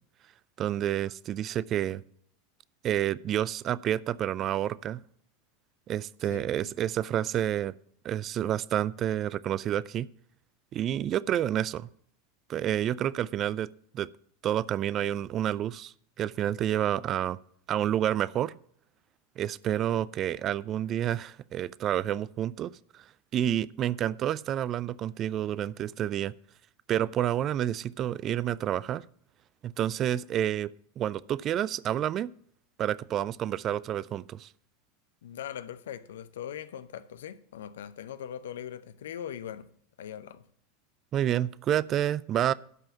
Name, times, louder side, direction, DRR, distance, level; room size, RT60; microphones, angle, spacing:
voice 1, 0.6-2.0 2.8-5.0 5.9-7.7 8.0-10.1 10.7-11.9 12.5-13.7 13.9-14.1 14.4-17.4 17.7-18.5 19.4-23.0 23.3-26.3 26.9-29.0 29.6-30.7 31.0-32.3 32.8-34.5 41.1-42.5, right 11 dB, 40° right, 0.4 m, -29 dB
voice 2, 6.3-6.7 35.2-39.7 40.0-40.4, left 9 dB, 70° left, 0.7 m, -40 dB
12.0 x 5.5 x 7.2 m
figure-of-eight pair, 85°, 0 cm